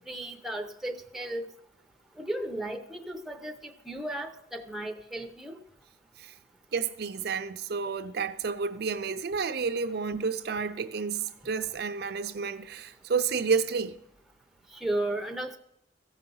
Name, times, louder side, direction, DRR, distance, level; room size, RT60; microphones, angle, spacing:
voice 1, 0.0-1.5 2.2-5.6 14.7-15.6, right 1 dB, ahead, 0.6 m, -35 dB
voice 2, 6.7-14.0, right 5 dB, 55° right, 0.5 m, -30 dB
14.5 x 5.6 x 5.5 m
head